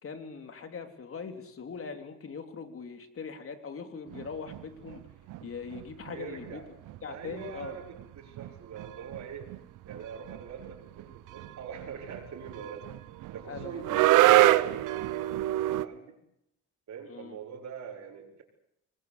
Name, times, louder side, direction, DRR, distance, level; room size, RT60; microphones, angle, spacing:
voice 1, 0.0-5.0 5.4-6.6 7.0-7.8 13.5-14.1 17.1-17.4, left 5 dB, 45° left, 6 dB, 3.6 m, -41 dB
sound 1, 4.1-5.0 5.3-6.2 6.4-6.6 6.9-7.0 7.2-15.9, right 15 dB, 90° right, 0.9 m, -27 dB
voice 2, 6.1-6.7 7.1-9.5 9.8-12.9 13.3-16.2 16.9-18.4, right 7 dB, 60° right, -3 dB, 5.4 m, -43 dB
26.5 x 20.5 x 8.2 m, 0.81 s
cardioid pair, 90°, 30 cm